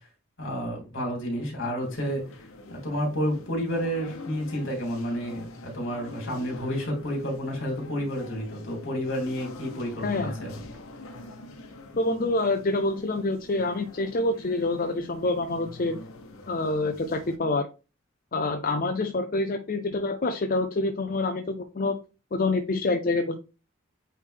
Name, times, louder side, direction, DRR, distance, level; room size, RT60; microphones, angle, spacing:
voice 1, 0.4-10.5, equal, 65° left, -1 dB, 3.3 m, -30 dB
sound 1, 1.8-17.4, left 2 dB, 90° left, 1.1 m, -45 dB
voice 2, 10.0-10.3 12.0-16.0 16.5-17.7 18.3-22.0 22.3-23.4, left 2 dB, 40° left, 6 dB, 0.5 m, -27 dB
8.7 x 3.4 x 3.5 m, 0.31 s
head